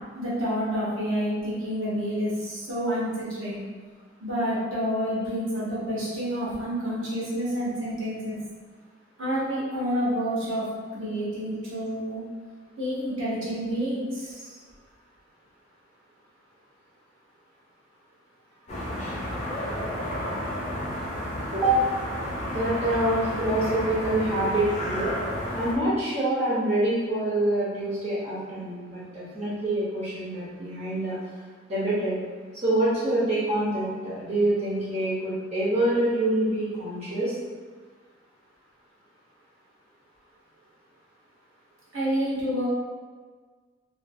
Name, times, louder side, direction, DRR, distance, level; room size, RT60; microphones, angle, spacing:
voice 1, 0.1-3.6 4.2-8.4 9.2-10.7 10.9-12.2 12.8-14.6 41.9-42.6, equal, 85° right, -7 dB, 1.0 m, -28 dB
sound 1, 18.7-25.7, equal, 35° left, 0.5 m, -31 dB
voice 2, 21.5-21.8 22.5-25.1 25.5-31.2 31.7-32.2 32.6-37.3, right 1 dB, 35° right, -10 dB, 0.8 m, -26 dB
2.5 x 2.5 x 2.6 m, 1.5 s
head